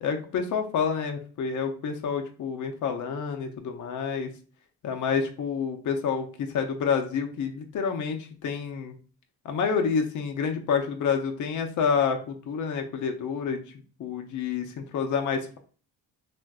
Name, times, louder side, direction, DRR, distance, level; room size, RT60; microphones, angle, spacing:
voice 1, 0.0-4.3 4.8-9.0 9.4-13.6 14.0-15.6, left 6 dB, 50° left, 5 dB, 0.5 m, -28 dB
3.4 x 2.5 x 2.3 m, 0.40 s
cardioid pair, 90°, 40 cm